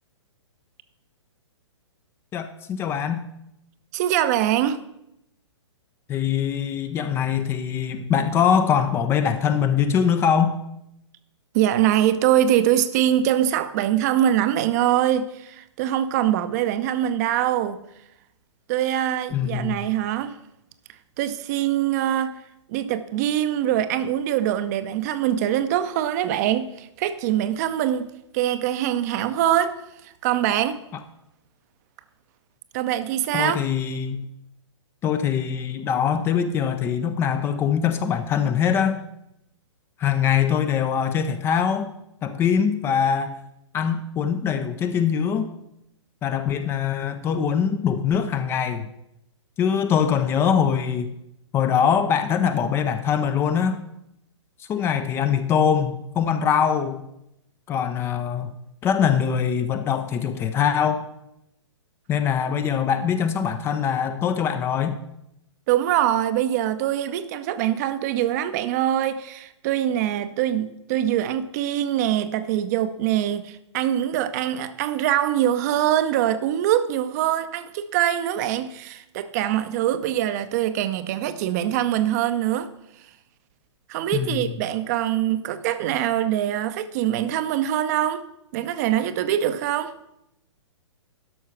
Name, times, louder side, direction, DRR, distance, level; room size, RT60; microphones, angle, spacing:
voice 1, 2.3-3.3 6.1-10.6 19.3-19.8 33.3-34.3 35.0-39.0 40.0-41.9 42.2-43.4 43.7-45.5 46.2-48.9 49.6-51.1 51.5-53.8 54.7-57.1 57.7-58.6 58.8-61.1 62.1-65.0 84.1-84.6, left 7 dB, 15° left, 0.5 m, -23 dB
voice 2, 3.9-4.8 11.5-17.8 18.7-20.4 21.2-22.4 22.7-28.1 28.3-29.8 30.0-30.8 32.7-33.6 65.7-82.7 83.9-88.2 88.5-89.9, right 11 dB, 35° right, 0.7 m, -23 dB
12.5 x 5.4 x 5.9 m
figure-of-eight pair, 120°, 16 cm